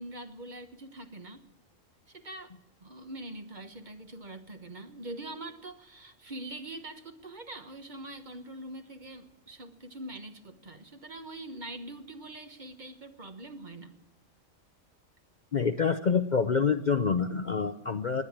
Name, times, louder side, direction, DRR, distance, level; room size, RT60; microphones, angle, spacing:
voice 1, 0.0-1.4 2.1-2.5 2.8-13.9, right 1 dB, 40° right, 7 dB, 1.3 m, -43 dB
voice 2, 15.5-18.2, left 5 dB, 45° left, 9 dB, 0.7 m, -27 dB
20.5 x 9.6 x 7.3 m, 0.96 s
omnidirectional pair, 1.3 m